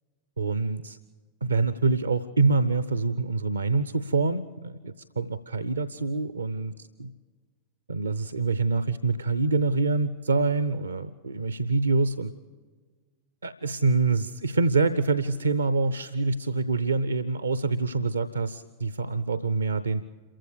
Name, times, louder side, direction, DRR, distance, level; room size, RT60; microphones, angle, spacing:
voice 1, 0.4-1.0 1.4-6.7 7.0-7.1 7.9-12.3 13.4-20.0, right 3 dB, 75° right, 14 dB, 0.6 m, -26 dB
27.5 x 15.0 x 6.6 m, 1.5 s
figure-of-eight pair, 90°, 0 cm